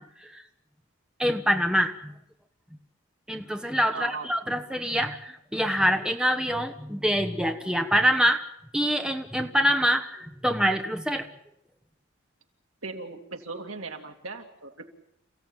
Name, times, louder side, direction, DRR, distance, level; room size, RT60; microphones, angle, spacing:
voice 1, 1.2-2.1 3.3-8.4 8.7-11.3, equal, 5° right, 4 dB, 1.3 m, -25 dB
voice 2, 3.9-4.3 12.8-14.9, right 4 dB, 80° right, 4 dB, 2.8 m, -38 dB
28.5 x 16.0 x 9.0 m, 0.80 s
head